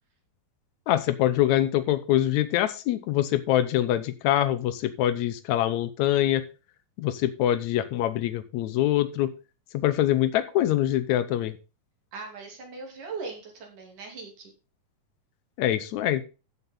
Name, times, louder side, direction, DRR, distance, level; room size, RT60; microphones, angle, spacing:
voice 1, 0.9-6.4 7.0-9.3 9.7-11.6 15.6-16.2, left 13 dB, 80° left, 13 dB, 1.7 m, -24 dB
voice 2, 12.1-14.5, right 4 dB, 60° right, 1 dB, 4.3 m, -39 dB
14.5 x 6.0 x 3.8 m, 0.32 s
omnidirectional pair, 4.1 m